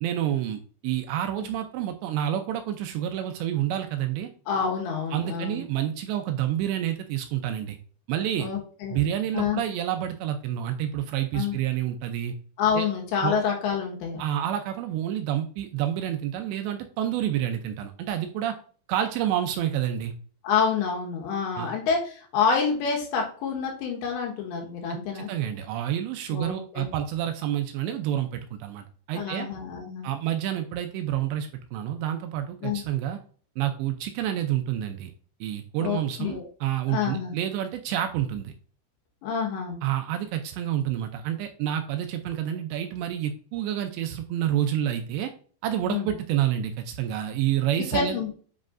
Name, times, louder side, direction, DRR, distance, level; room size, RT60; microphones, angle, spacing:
voice 1, 0.0-4.3 5.1-7.8 8.1-8.5 8.9-12.3 12.7-12.9 13.2-13.3 14.2-18.5 18.9-20.1 21.6-21.7 24.9-29.5 30.0-33.2 33.6-35.1 35.4-38.5 39.8-45.3 45.6-48.2, right 11 dB, 80° right, 6 dB, 2.6 m, -28 dB
voice 2, 4.5-5.6 8.4-9.1 9.3-9.6 11.3-11.6 12.6-14.2 20.4-25.3 26.3-26.9 29.1-30.1 32.6-32.8 35.8-36.5 36.9-37.3 39.2-39.8 45.9-46.1 47.9-48.3, left 6 dB, 75° left, 0 dB, 3.5 m, -28 dB
9.7 x 5.1 x 2.5 m, 0.43 s
omnidirectional pair, 5.3 m